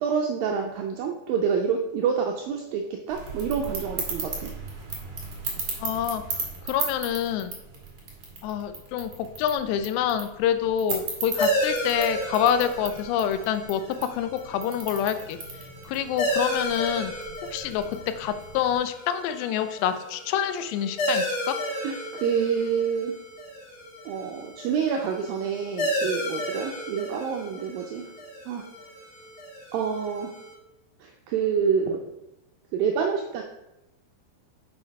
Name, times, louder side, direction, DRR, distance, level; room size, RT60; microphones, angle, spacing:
voice 1, 0.0-4.5 21.8-23.1 24.1-28.0 28.5-28.6 29.7-30.3 31.0-32.0 32.7-33.4, right 6 dB, 85° right, 1 dB, 2.0 m, -27 dB
sound 1, 3.1-18.8, right 4 dB, 60° right, 1.1 m, -37 dB
voice 2, 5.8-6.2 6.7-7.5 8.4-13.8 14.1-15.4 15.9-17.1 17.5-17.8 18.2-21.6, left 9 dB, 85° left, 10 dB, 2.8 m, -26 dB
sound 2, 11.4-30.5, equal, 40° left, 3.2 m, -33 dB
7.2 x 5.8 x 5.2 m, 0.91 s
omnidirectional pair, 4.9 m